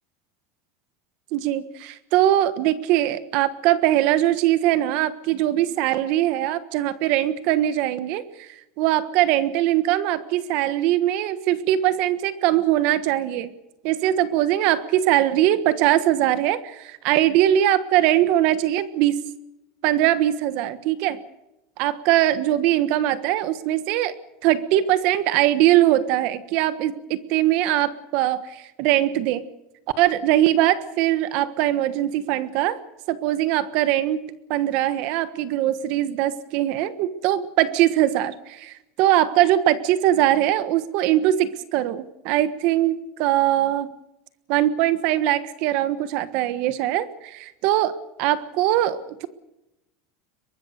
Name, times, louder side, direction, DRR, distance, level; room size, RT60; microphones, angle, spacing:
voice 1, 1.3-8.5 8.8-13.5 13.8-19.2 19.8-21.2 21.8-24.1 24.4-29.4 30.0-32.8 33.1-34.2 34.5-43.9 44.5-47.0 47.6-49.3, right 13 dB, 55° right, 13 dB, 1.3 m, -21 dB
23.5 x 20.5 x 6.5 m, 0.91 s
supercardioid pair, 155°, 2 cm